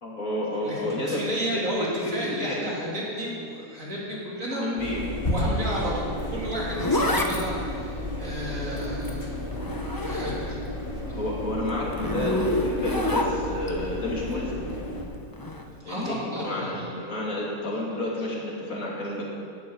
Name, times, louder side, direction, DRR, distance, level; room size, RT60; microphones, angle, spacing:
voice 1, 0.0-1.2 1.5-2.7 4.5-5.0 5.4-5.6 11.1-14.7 15.8-19.3, left 1 dB, 60° left, -4 dB, 3.0 m, -30 dB
voice 2, 0.6-4.7 5.3-9.4 9.9-10.6 11.1-11.2 15.9-16.8, equal, 60° right, -6 dB, 3.5 m, -32 dB
sound 1, 4.8-15.1, left 1 dB, 40° left, 1.8 m, -32 dB
Zipper (clothing), 6.2-10.7 11.0-13.7 15.3-15.6, left 1 dB, 20° left, 0.6 m, -28 dB
11.0 x 9.0 x 8.8 m, 2.4 s
omnidirectional pair, 1.6 m